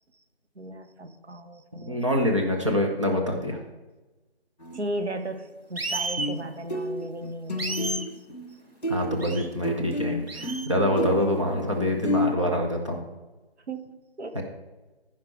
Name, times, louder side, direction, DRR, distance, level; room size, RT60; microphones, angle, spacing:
voice 1, 0.5-2.0 4.7-7.8 8.5-8.6 13.7-14.4, right 1 dB, 90° right, 6 dB, 1.5 m, -36 dB
voice 2, 1.7-3.6 8.9-13.0 14.3-14.4, left 1 dB, 30° right, 0 dB, 1.0 m, -25 dB
sound 1, 4.6-4.8 6.2-6.4 6.7-8.5 8.8-12.3, left 1 dB, 40° left, 1.2 m, -30 dB
sound 2, 5.8-6.3 7.6-8.1 9.2-9.5 10.3-10.7, right 2 dB, 65° right, 1.1 m, -31 dB
14.5 x 5.9 x 4.5 m, 1.2 s
figure-of-eight pair, 180°, 32 cm